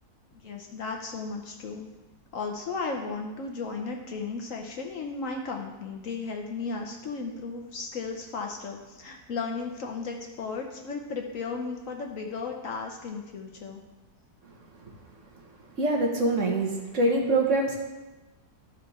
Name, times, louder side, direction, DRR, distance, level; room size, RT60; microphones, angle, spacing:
voice 1, 0.3-1.9 2.3-13.8, left 4 dB, 60° left, 2 dB, 1.0 m, -35 dB
voice 2, 15.8-17.8, right 2 dB, 50° right, 0 dB, 1.4 m, -24 dB
12.5 x 4.4 x 4.1 m, 1.1 s
omnidirectional pair, 1.8 m